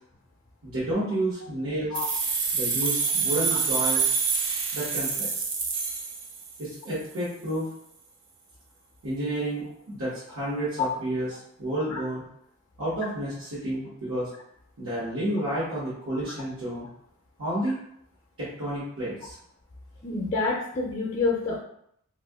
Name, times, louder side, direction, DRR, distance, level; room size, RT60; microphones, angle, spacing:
voice 1, 0.6-2.0 2.5-4.0 4.7-5.4 6.6-7.7 9.0-11.3 11.6-12.2 12.8-14.3 14.8-16.9 17.4-17.8 18.4-19.3, right 1 dB, 75° right, -11 dB, 1.1 m, -30 dB
sound 1, 1.9-6.7, right 5 dB, 55° right, 0.6 m, -27 dB
voice 2, 20.0-21.6, left 3 dB, 30° left, -1 dB, 0.5 m, -28 dB
2.6 x 2.4 x 3.5 m, 0.70 s
head